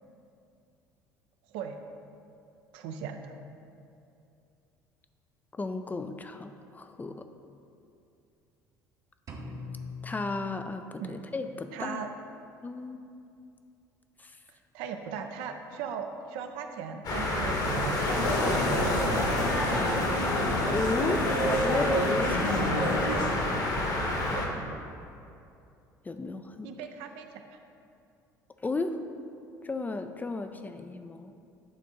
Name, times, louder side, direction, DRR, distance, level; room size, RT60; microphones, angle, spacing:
voice 1, 2.7-3.3 11.0-11.3 11.7-12.1 14.7-19.0 24.3-24.5 26.6-27.6, right 6 dB, 60° right, 6 dB, 0.5 m, -38 dB
voice 2, 5.5-7.3 10.0-12.1 12.6-13.1 14.2-14.4 20.6-22.8 26.0-26.7 28.6-29.1 29.6-31.3, left 3 dB, 15° left, 7 dB, 0.4 m, -34 dB
sound 1, 9.3-11.2, left 3 dB, 35° right, 0.8 m, -42 dB
sound 2, 17.0-24.5, left 1 dB, 40° left, 1.1 m, -29 dB
sound 3, 17.9-23.3, equal, 85° left, 0.8 m, -29 dB
8.5 x 3.5 x 4.3 m, 2.6 s
figure-of-eight pair, 60°, 10 cm